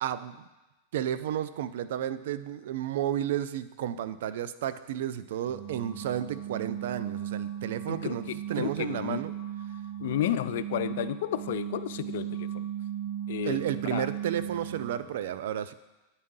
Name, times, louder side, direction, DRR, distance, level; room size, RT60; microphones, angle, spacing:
voice 1, 0.0-0.5 0.9-9.3 13.4-15.7, right 10 dB, 75° right, 14 dB, 0.3 m, -32 dB
sound 1, 5.5-15.2, right 10 dB, 55° right, 1.8 m, -37 dB
voice 2, 7.9-9.2 10.0-12.5 13.3-14.1, left 11 dB, 75° left, 13 dB, 0.3 m, -32 dB
9.4 x 4.1 x 3.7 m, 1.1 s
supercardioid pair, 130°, 0 cm